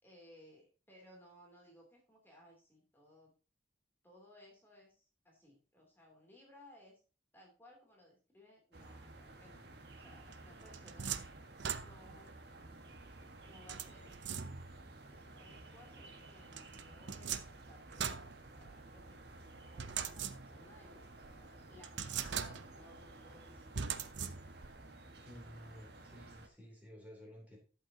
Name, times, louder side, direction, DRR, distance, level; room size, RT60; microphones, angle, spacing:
voice 1, 0.0-3.3 4.0-7.0 7.3-9.7 10.0-11.2 11.8-12.4 13.4-14.1 15.1-19.2 19.7-21.0 21.7-23.7, left 1 dB, 10° left, -2 dB, 3.0 m, -61 dB
sound 1, 8.7-26.5, right 2 dB, 60° right, 1.5 m, -54 dB
sound 2, 10.3-12.3 13.7-14.9 16.5-19.0 19.8-20.8 21.2-21.3 21.8-22.9 23.7-24.8, right 7 dB, 75° right, 0.7 m, -41 dB
voice 2, 25.2-27.6, equal, 10° right, -1 dB, 3.1 m, -53 dB
12.0 x 8.1 x 2.8 m, 0.36 s
head